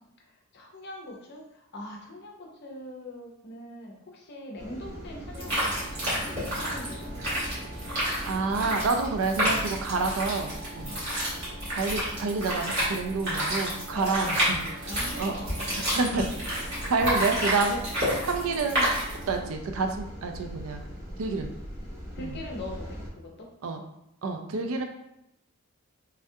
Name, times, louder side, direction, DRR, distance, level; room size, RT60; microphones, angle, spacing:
voice 1, 0.2-7.5 10.8-11.1 13.9-15.9 16.7-16.9 18.0-18.1 22.2-23.5, left 1 dB, 50° left, 0 dB, 0.6 m, -42 dB
sound 1, 4.6-23.1, equal, 15° right, 0.6 m, -41 dB
sound 2, 5.3-19.4, equal, 50° right, 1.5 m, -30 dB
voice 2, 8.3-10.9 11.7-15.4 16.0-16.2 16.9-17.8 18.3-18.9 19.3-20.8 21.2-21.5 22.2-22.4 23.6-23.8 24.2-24.8, right 4 dB, 65° right, 4 dB, 0.4 m, -28 dB
3.3 x 2.3 x 2.7 m, 0.79 s
head